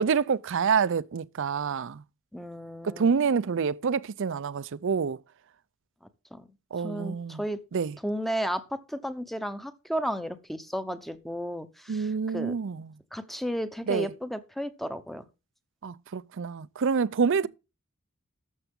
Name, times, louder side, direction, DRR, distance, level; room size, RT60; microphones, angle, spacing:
voice 1, 0.0-2.0 2.8-5.2 6.7-7.4 7.7-8.0 11.9-12.9 13.9-14.1 15.8-17.5, right 6 dB, 60° right, 0.5 m, -27 dB
voice 2, 2.3-3.1 6.3-6.5 6.8-7.6 8.0-12.5 13.1-15.2, equal, ahead, 0.8 m, -33 dB
13.0 x 6.9 x 3.7 m
head